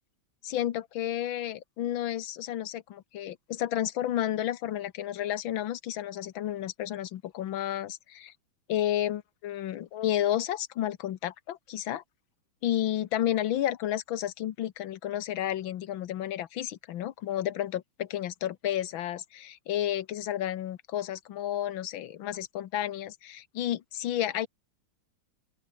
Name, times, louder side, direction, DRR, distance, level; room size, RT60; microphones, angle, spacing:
voice 1, 0.4-8.3 8.7-12.0 12.6-24.5, left 12 dB, 80° left, 1.7 m, -31 dB
open air
omnidirectional pair, 2.1 m